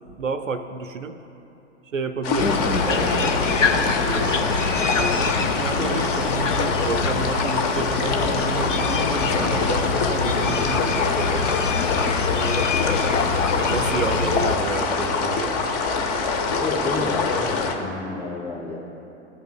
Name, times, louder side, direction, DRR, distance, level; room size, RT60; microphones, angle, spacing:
voice 1, 0.2-1.2 1.9-4.6 5.0-11.5 12.3-12.7 13.6-15.6, right 4 dB, 85° right, 9 dB, 0.5 m, -30 dB
sound 1, 2.2-17.8, left 4 dB, 35° left, 0.7 m, -25 dB
sound 2, 2.4-14.6, left 4 dB, 80° left, 0.6 m, -25 dB
voice 2, 16.6-18.8, left 3 dB, 5° left, -3 dB, 1.6 m, -30 dB
14.0 x 5.4 x 2.2 m, 2.9 s
figure-of-eight pair, 105°, 37 cm